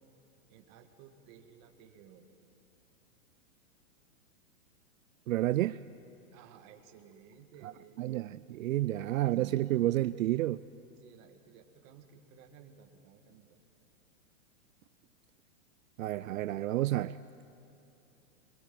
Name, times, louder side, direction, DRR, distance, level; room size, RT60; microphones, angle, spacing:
voice 1, 0.5-2.3 6.3-8.3 8.9-9.5 10.9-13.6, right 8 dB, 30° right, 6 dB, 1.9 m, -57 dB
voice 2, 5.3-5.8 8.0-10.6 16.0-17.2, right 15 dB, 75° right, 14 dB, 0.6 m, -30 dB
25.0 x 21.5 x 7.6 m, 2.8 s
supercardioid pair, 155°, 41 cm